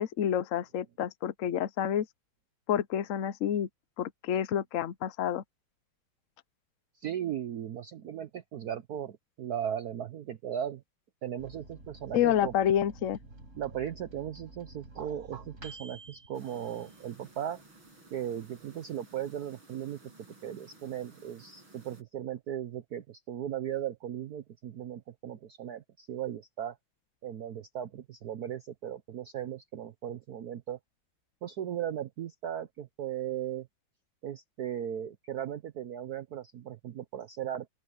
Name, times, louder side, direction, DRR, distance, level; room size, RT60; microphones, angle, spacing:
voice 1, 0.0-2.1 2.7-3.7 4.0-5.4 12.1-13.2, left 10 dB, 75° left, 0.7 m, -28 dB
voice 2, 7.0-10.8 11.2-12.5 13.5-17.6 18.1-20.0 20.4-26.8 27.2-30.8 31.4-33.7 34.2-37.7, right 10 dB, 60° right, 1.2 m, -37 dB
Microwave oven, 11.4-17.5 17.9-18.0 18.2-18.9, right 2 dB, 35° right, 5.3 m, -50 dB
sound 1, 16.3-22.0, right 2 dB, 80° right, 7.8 m, -56 dB
open air
omnidirectional pair, 2.2 m